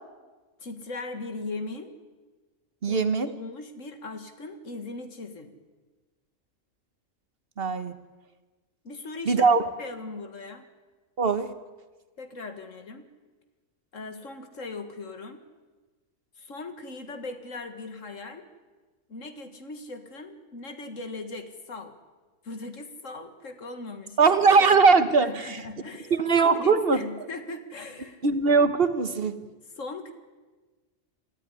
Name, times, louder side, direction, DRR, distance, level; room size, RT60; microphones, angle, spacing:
voice 1, 0.6-1.9 2.9-5.6 8.8-10.7 12.2-13.1 13.9-15.4 16.4-18.5 19.1-22.0 22.4-24.2 25.2-28.2 29.8-30.1, left 3 dB, 75° left, 8 dB, 2.2 m, -39 dB
voice 2, 2.8-3.3 7.6-7.9 9.3-9.7 11.2-11.5 24.2-25.6 26.1-27.0 28.2-29.4, right 4 dB, 50° right, 11 dB, 1.3 m, -21 dB
27.0 x 14.0 x 9.9 m, 1.3 s
omnidirectional pair, 1.3 m